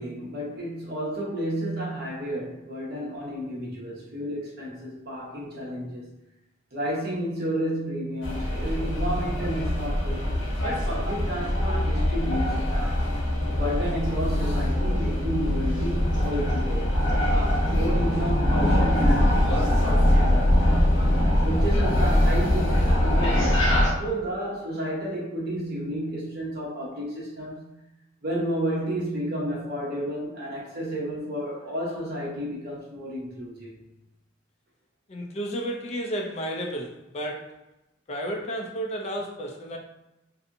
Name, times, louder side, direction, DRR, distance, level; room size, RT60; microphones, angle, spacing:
voice 1, 0.0-6.1 6.7-10.2 10.6-13.0 13.6-17.0 17.2-20.5 21.4-27.6 28.2-33.7, right 1 dB, 55° right, -4 dB, 0.9 m, -31 dB
sound 1, 8.2-23.9, left 1 dB, 80° left, 0.8 m, -23 dB
voice 2, 35.1-37.6 38.1-39.8, right 1 dB, 35° left, 1 dB, 0.4 m, -32 dB
2.6 x 2.5 x 2.5 m, 0.92 s
head